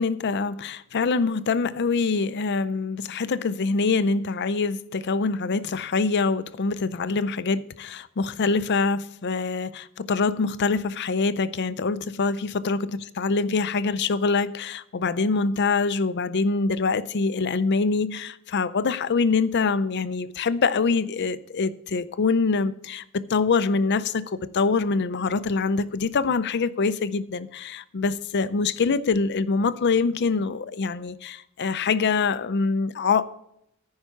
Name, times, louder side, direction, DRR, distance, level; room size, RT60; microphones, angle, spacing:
voice 1, 0.0-33.2, left 4 dB, 50° left, 0.5 m, -24 dB
14.0 x 5.6 x 5.8 m
head